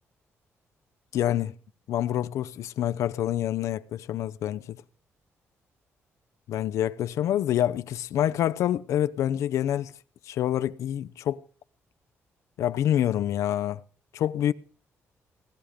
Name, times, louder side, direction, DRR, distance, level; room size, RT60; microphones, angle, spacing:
voice 1, 1.1-1.5 1.9-4.8 6.5-9.9 10.3-11.4 12.6-13.8 14.1-14.5, left 11 dB, 85° left, 0.7 m, -27 dB
18.0 x 13.0 x 5.1 m
cardioid pair, 130°, 5 cm